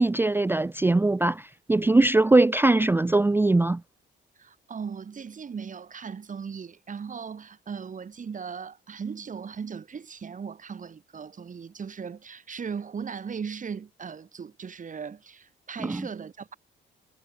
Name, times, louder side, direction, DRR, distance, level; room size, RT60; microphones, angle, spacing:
voice 1, 0.0-3.8 15.9-16.0, right 2 dB, 10° right, 0.5 m, -21 dB
voice 2, 4.4-16.6, right 6 dB, 40° right, 2.9 m, -38 dB
cardioid pair, 90°, 20 cm